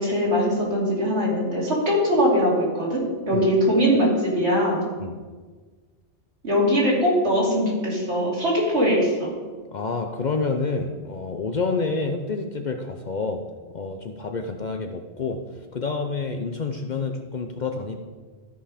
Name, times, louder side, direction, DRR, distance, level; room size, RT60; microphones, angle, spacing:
voice 1, 0.0-4.8 6.4-9.3, equal, 70° right, -5 dB, 3.1 m, -21 dB
voice 2, 9.7-13.4 13.7-15.4 15.7-18.0, left 4 dB, 45° left, 5 dB, 0.7 m, -28 dB
13.5 x 5.4 x 5.0 m, 1.4 s
omnidirectional pair, 1.2 m